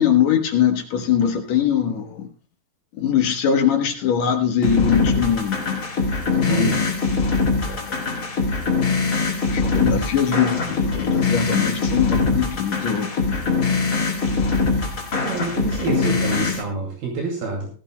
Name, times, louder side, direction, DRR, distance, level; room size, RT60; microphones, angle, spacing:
voice 1, 0.0-2.3 3.0-5.8 6.3-6.7 7.1-7.2 7.6-7.9 9.5-13.6, left 8 dB, 65° left, 4 dB, 1.8 m, -22 dB
sound 1, 4.6-16.6, left 4 dB, 35° left, 1.8 m, -22 dB
voice 2, 6.4-6.9 15.2-17.7, right 3 dB, 70° right, 1 dB, 4.2 m, -27 dB
17.5 x 16.0 x 2.2 m, 0.35 s
omnidirectional pair, 4.6 m